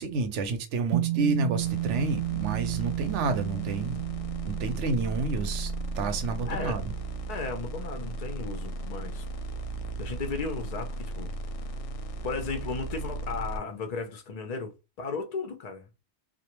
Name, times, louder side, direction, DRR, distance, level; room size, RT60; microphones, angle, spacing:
voice 1, 0.0-4.0 4.4-6.9, right 3 dB, 90° right, 0.9 m, -30 dB
sound 1, 0.9-9.4, right 17 dB, 60° right, 0.7 m, -34 dB
sound 2, 1.6-13.6, right 2 dB, 90° left, 0.9 m, -36 dB
voice 2, 6.4-6.8 7.3-9.2 10.0-11.3 12.2-15.9, left 4 dB, 60° left, 0.4 m, -35 dB
2.4 x 2.1 x 2.8 m
omnidirectional pair, 1.2 m